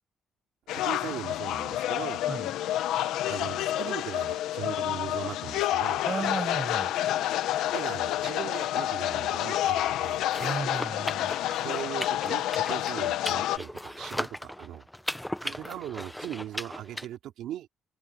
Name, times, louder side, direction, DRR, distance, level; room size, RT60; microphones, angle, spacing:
sound 1, 0.7-13.6, left 13 dB, 90° left, 1.4 m, -29 dB
voice 1, 0.7-2.2 3.3-6.0 7.7-10.2 11.6-14.9 15.4-17.7, right 12 dB, 85° right, 3.0 m, -39 dB
voice 2, 6.0-6.9 10.4-11.3, right 5 dB, 35° right, 6.2 m, -34 dB
sound 2, 10.2-17.1, left 1 dB, 5° left, 0.9 m, -37 dB
cardioid pair, 90°, 0 cm